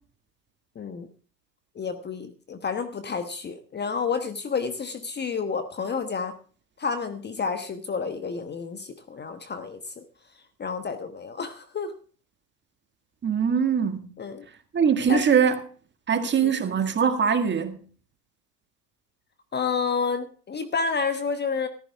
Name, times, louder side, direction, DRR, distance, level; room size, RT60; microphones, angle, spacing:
voice 1, 0.7-1.1 1.7-6.4 6.8-10.0 10.6-11.9 14.2-14.4 15.1-15.5 16.1-16.6 19.5-21.7, left 5 dB, 20° left, 1.1 m, -30 dB
voice 2, 13.2-14.1 14.7-15.6 16.1-17.8, right 7 dB, 20° right, 1.7 m, -22 dB
14.0 x 14.0 x 3.5 m
hypercardioid pair, 95°, 49 cm